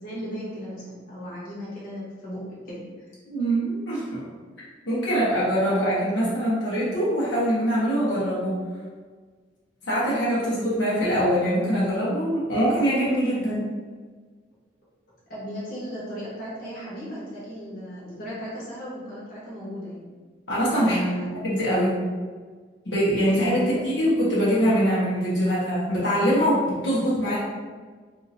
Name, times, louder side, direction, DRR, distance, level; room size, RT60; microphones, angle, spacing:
voice 1, 0.0-2.8 13.4-13.7 15.3-20.1 20.8-21.4 23.5-23.9, equal, 55° left, -8 dB, 1.2 m, -35 dB
voice 2, 3.3-4.3 4.9-8.5 9.9-13.5 20.5-21.0 21.4-21.9 22.8-27.4, equal, 80° left, -8 dB, 1.1 m, -23 dB
2.8 x 2.6 x 4.1 m, 1.5 s
head